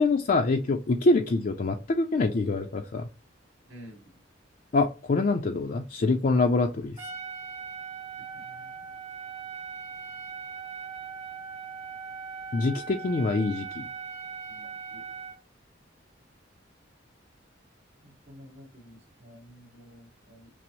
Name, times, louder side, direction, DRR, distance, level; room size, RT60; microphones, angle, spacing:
voice 1, 0.0-3.1 4.7-7.1 12.5-13.9, left 3 dB, 45° left, 3 dB, 0.4 m, -25 dB
voice 2, 3.7-4.1 8.1-8.9 14.5-15.0 18.0-20.5, equal, 75° right, 1 dB, 1.9 m, -51 dB
Trumpet, 7.0-15.4, right 6 dB, 35° right, 1.1 m, -40 dB
6.0 x 2.0 x 2.9 m, 0.32 s
head